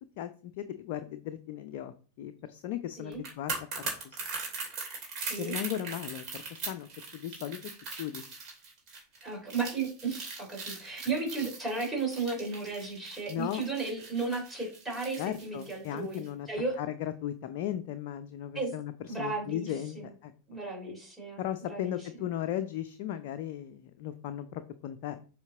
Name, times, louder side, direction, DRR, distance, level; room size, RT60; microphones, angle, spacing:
voice 1, 0.2-3.5 4.0-4.2 5.4-6.9 7.1-7.6 8.0-8.2 13.3-13.6 15.2-16.5 16.8-18.9 19.2-20.3 21.4-25.2, left 11 dB, 45° left, 9 dB, 0.5 m, -36 dB
sound 1, 3.1-16.3 16.6-16.7, right 4 dB, 35° right, 2.6 m, -40 dB
voice 2, 5.2-5.6 9.2-16.8 18.5-18.7 19.1-20.1 20.5-22.0, right 3 dB, 10° right, -2 dB, 3.5 m, -34 dB
7.2 x 3.7 x 3.7 m, 0.37 s
figure-of-eight pair, 90°, 0 cm